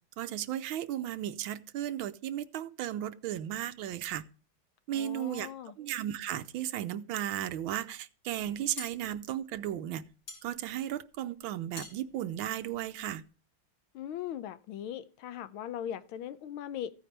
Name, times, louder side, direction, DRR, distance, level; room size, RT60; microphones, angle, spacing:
voice 1, 0.2-4.2 4.9-5.5 5.8-10.0 10.4-13.2, right 11 dB, 80° right, 1.5 m, -35 dB
voice 2, 4.9-5.7 13.9-16.9, left 10 dB, 85° left, 1.6 m, -39 dB
sound 1, 8.4-13.3, left 3 dB, 65° left, 4.1 m, -49 dB
15.0 x 9.3 x 3.3 m
omnidirectional pair, 2.2 m